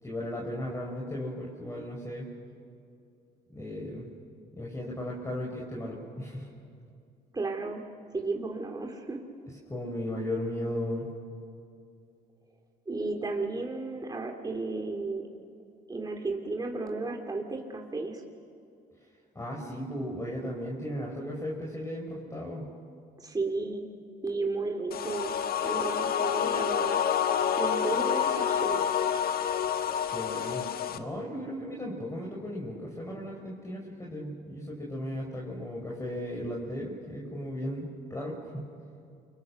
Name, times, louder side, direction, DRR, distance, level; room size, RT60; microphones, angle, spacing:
voice 1, 0.0-2.3 3.5-4.1 4.6-6.5 9.7-11.1 19.3-22.7 30.1-30.7 30.9-38.7, left 1 dB, 15° left, -2 dB, 5.2 m, -36 dB
voice 2, 7.3-7.8 8.1-9.2 12.9-15.3 15.9-18.2 23.2-23.8 24.2-25.3 25.6-27.0 27.6-28.8, right 3 dB, 20° right, 2 dB, 2.8 m, -33 dB
sound 1, 24.9-31.0, left 8 dB, 60° left, 1.4 m, -28 dB
29.5 x 24.0 x 6.6 m, 2.5 s
supercardioid pair, 75°, 18 cm